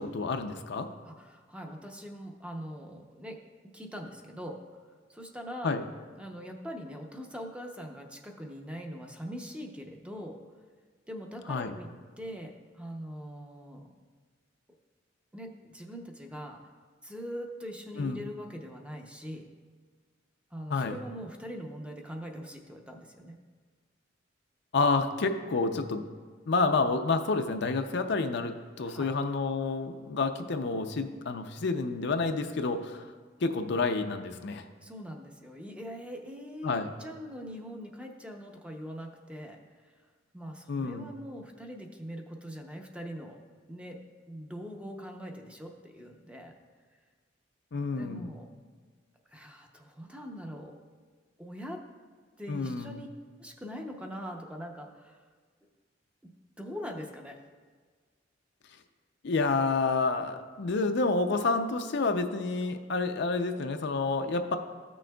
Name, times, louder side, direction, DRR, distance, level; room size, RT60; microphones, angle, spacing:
voice 1, 0.0-0.9 5.6-5.8 11.5-11.7 18.0-18.2 20.7-21.0 24.7-26.0 26.5-33.1 33.4-34.6 36.6-36.9 40.7-41.1 47.7-48.3 52.5-53.0 59.2-64.6, left 3 dB, 65° left, 7 dB, 0.5 m, -29 dB
voice 2, 1.0-3.4 3.7-4.8 5.1-5.7 6.2-10.4 11.1-11.9 12.2-13.9 15.3-16.7 17.0-19.5 20.5-23.3 28.8-29.1 34.8-40.0 40.3-43.4 43.7-44.0 44.3-46.5 48.0-48.5 49.3-50.8 51.4-51.8 52.4-53.1 53.4-55.2 56.6-57.4, equal, 5° right, 2 dB, 0.6 m, -42 dB
14.0 x 6.2 x 2.3 m, 1.5 s
head